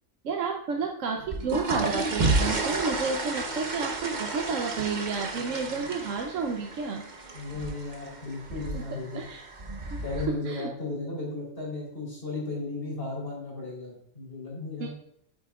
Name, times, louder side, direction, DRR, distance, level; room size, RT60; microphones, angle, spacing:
voice 1, 0.2-7.0 8.7-8.8 9.1-9.4 9.9-10.0 10.3-10.7 14.8-14.9, right 5 dB, 70° right, 2 dB, 1.1 m, -31 dB
sound 1, 1.2-10.3, right 2 dB, 35° right, 1.1 m, -31 dB
voice 2, 7.3-9.2 10.0-14.9, left 3 dB, 45° left, -3 dB, 3.9 m, -35 dB
9.1 x 8.8 x 2.4 m, 0.74 s
omnidirectional pair, 1.4 m